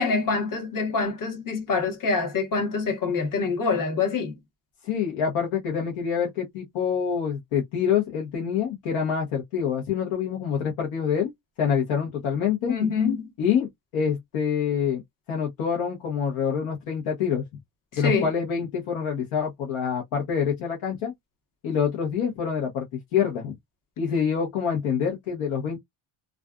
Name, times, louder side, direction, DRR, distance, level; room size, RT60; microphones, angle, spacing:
voice 1, 0.0-4.4 12.7-13.3 17.9-18.3, left 4 dB, 40° left, 1.1 m, -25 dB
voice 2, 4.8-11.3 11.6-12.7 13.4-13.7 13.9-15.0 15.3-17.4 18.0-21.1 21.6-22.8 23.1-23.5 24.0-25.8, left 7 dB, 80° left, 1.1 m, -26 dB
2.4 x 2.4 x 2.3 m
cardioid pair, 105°, 47 cm